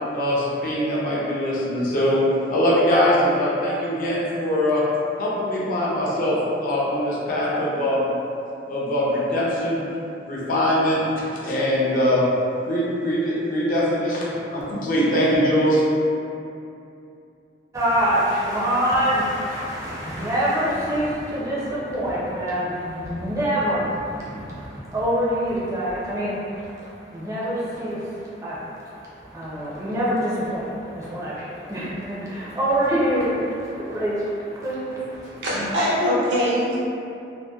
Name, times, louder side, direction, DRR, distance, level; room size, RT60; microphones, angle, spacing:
voice 1, 0.1-4.8 5.2-8.1 8.7-9.8 10.3-11.1 11.4-12.2 12.6-15.8, equal, 50° left, -7 dB, 0.5 m, -22 dB
voice 2, 17.7-26.6 27.1-28.1 28.4-28.9 29.3-35.3, equal, 15° right, -8 dB, 0.4 m, -25 dB
voice 3, 35.2-36.8, equal, 75° right, -7 dB, 0.6 m, -22 dB
2.6 x 2.1 x 2.3 m, 2.7 s
head